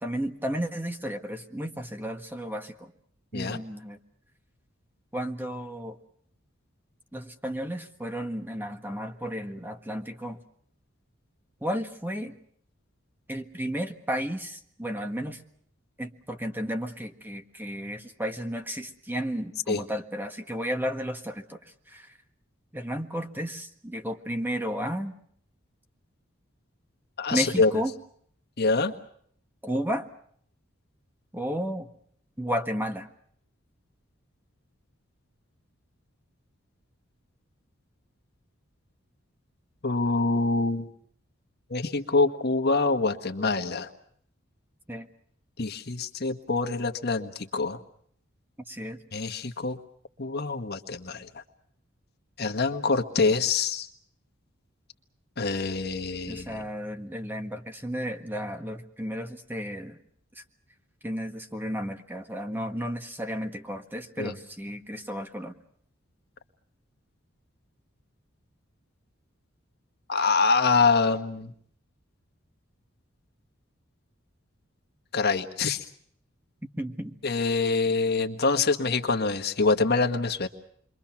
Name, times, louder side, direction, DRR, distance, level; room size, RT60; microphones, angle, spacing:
voice 1, 0.0-2.9 3.3-4.0 5.1-6.0 7.1-10.4 11.6-12.3 13.3-15.4 16.0-21.6 21.9-22.1 22.7-25.1 27.3-27.9 29.6-30.1 31.3-31.9 32.4-33.1 44.9-45.1 48.7-49.0 56.3-60.0 61.0-65.5 76.8-77.2, equal, 10° right, 5 dB, 1.6 m, -33 dB
voice 2, 27.2-27.7 28.6-28.9 39.8-40.9 41.7-43.9 45.6-47.8 49.1-49.8 50.2-51.3 52.4-53.9 55.4-56.5 64.2-64.3 70.1-71.5 75.1-75.8 77.2-80.5, left 4 dB, 55° left, 6 dB, 1.5 m, -25 dB
28.5 x 23.5 x 6.0 m, 0.64 s
head